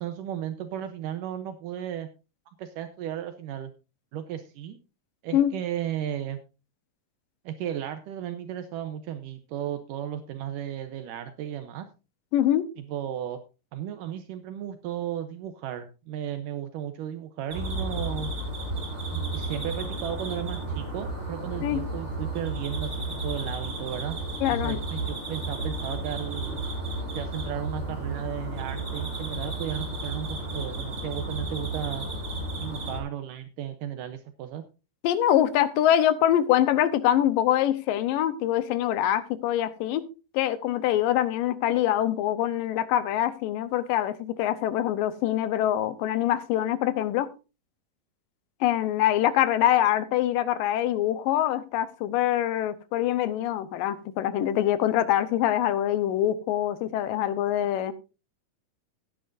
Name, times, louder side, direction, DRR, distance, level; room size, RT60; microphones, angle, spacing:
voice 1, 0.0-2.1 2.5-3.7 4.1-4.8 5.2-6.4 7.5-11.9 12.8-13.4 13.7-18.3 19.1-24.2 24.5-26.6 27.1-32.1 32.6-34.6, right 10 dB, 75° right, 2.3 m, -34 dB
voice 2, 12.3-12.7 21.6-21.8 24.4-24.8 35.0-40.1 40.3-47.3 48.6-57.9, left 12 dB, 80° left, 2.5 m, -24 dB
sound 1, 17.5-33.0, right 2 dB, 20° right, 3.7 m, -33 dB
16.0 x 10.0 x 2.6 m
omnidirectional pair, 4.0 m